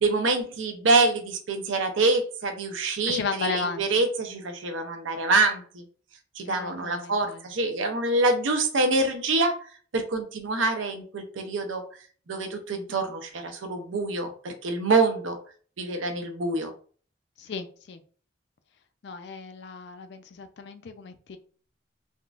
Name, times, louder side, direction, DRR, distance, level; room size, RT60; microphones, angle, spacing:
voice 1, 0.0-5.8 6.4-9.6 9.9-11.8 12.3-15.4 15.8-16.7, right 3 dB, 80° right, 6 dB, 0.6 m, -26 dB
voice 2, 3.1-3.9 6.5-7.4 17.4-18.0 19.0-21.4, left 5 dB, 60° left, 9 dB, 0.4 m, -34 dB
3.6 x 2.4 x 2.4 m, 0.43 s
head